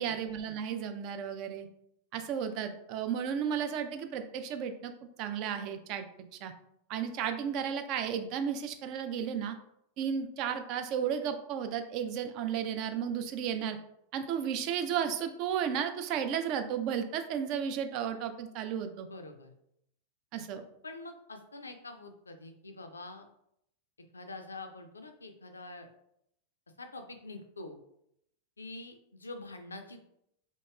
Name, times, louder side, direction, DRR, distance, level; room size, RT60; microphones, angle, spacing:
voice 1, 0.0-1.7 2.1-4.9 5.2-6.0 6.4-6.5 6.9-9.5 10.0-13.8 14.1-19.1 20.3-20.6, right 8 dB, 40° right, 7 dB, 0.3 m, -33 dB
voice 2, 19.0-19.5 20.8-23.3 24.1-25.9 26.8-27.8 28.6-30.1, left 2 dB, 75° left, 6 dB, 0.4 m, -45 dB
2.9 x 2.7 x 2.3 m, 0.75 s
figure-of-eight pair, 90°, 0 cm